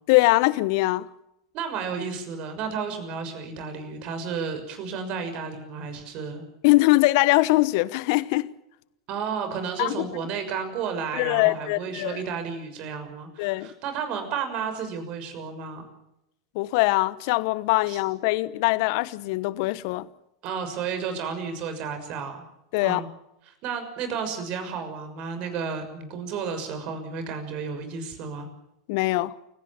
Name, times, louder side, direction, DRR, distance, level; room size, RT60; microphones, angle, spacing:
voice 1, 0.1-1.1 6.6-8.5 9.8-9.9 11.2-12.2 13.4-13.7 16.5-20.1 22.7-23.0 28.9-29.3, left 21 dB, 60° left, 1.1 m, -22 dB
voice 2, 1.5-6.4 9.1-15.8 17.9-18.0 20.4-22.4 22.8-23.1 23.4-28.5, right 6 dB, 50° right, 6.4 m, -32 dB
29.0 x 17.0 x 7.3 m
hypercardioid pair, 90°, 2 cm